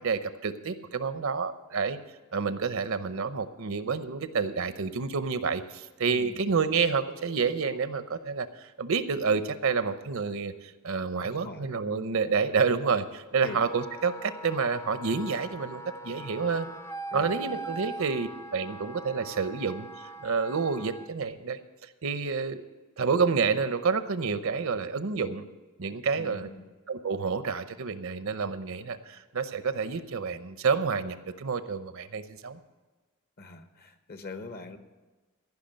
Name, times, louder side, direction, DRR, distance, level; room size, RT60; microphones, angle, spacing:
voice 1, 0.0-2.0 2.3-10.5 10.8-16.7 17.1-19.9 20.2-21.6 22.0-22.6 23.0-25.4 25.8-26.5 26.9-32.6, right 5 dB, 65° right, 11 dB, 0.7 m, -29 dB
voice 2, 6.1-6.7 11.2-11.7 12.2-12.3 13.4-13.6 17.1-17.6 26.1-26.7 33.4-34.8, left 3 dB, 45° left, 8 dB, 1.0 m, -43 dB
Wind instrument woodwind instrument, 13.4-21.1, right 2 dB, 10° left, 0.4 m, -41 dB
14.5 x 5.9 x 8.9 m, 1.3 s
head